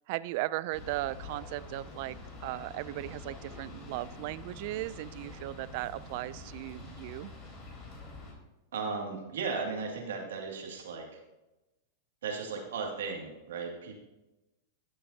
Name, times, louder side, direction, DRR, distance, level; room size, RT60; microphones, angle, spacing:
voice 1, 0.1-7.3, right 18 dB, 55° right, 18 dB, 0.3 m, -37 dB
sound 1, 0.7-8.3, left 3 dB, 35° left, 3.3 m, -46 dB
voice 2, 8.7-11.1 12.2-14.0, right 4 dB, 85° right, 1 dB, 2.2 m, -36 dB
13.5 x 7.7 x 2.8 m, 1.0 s
hypercardioid pair, 130°, 0 cm